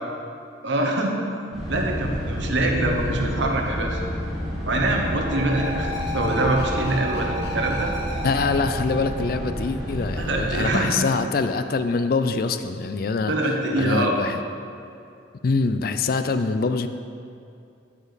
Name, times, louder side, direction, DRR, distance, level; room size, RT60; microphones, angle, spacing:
voice 1, 0.6-1.2 1.7-4.0 4.7-7.9 10.2-11.0 13.3-14.2, right 2 dB, 70° right, 1 dB, 1.1 m, -24 dB
sound 1, 1.5-10.6, equal, ahead, 2.0 m, -30 dB
sound 2, 3.9-10.3, left 1 dB, 70° left, 1.4 m, -35 dB
voice 2, 8.2-13.3 13.8-14.4 15.4-16.9, left 4 dB, 50° left, 10 dB, 0.3 m, -24 dB
13.0 x 5.1 x 4.1 m, 2.5 s
head